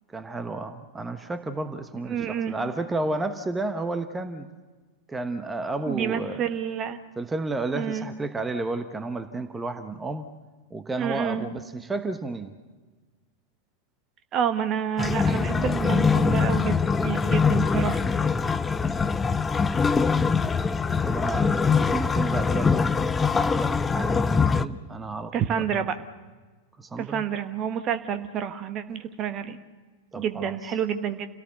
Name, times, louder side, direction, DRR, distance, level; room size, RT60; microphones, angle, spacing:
voice 1, 0.1-4.5 5.1-6.5 7.2-10.3 10.7-12.5 21.0-25.8 26.8-27.2 30.1-30.6, right 2 dB, 10° right, 9 dB, 1.2 m, -32 dB
voice 2, 2.1-2.5 5.9-7.0 7.7-8.1 11.0-11.5 14.3-18.0 25.3-25.9 27.0-29.6 30.2-31.3, right 8 dB, 30° right, 9 dB, 1.3 m, -29 dB
sound 1, 15.0-24.6, left 5 dB, 15° left, 0.6 m, -23 dB
29.0 x 17.5 x 6.8 m, 1.3 s
figure-of-eight pair, 90°, 0 cm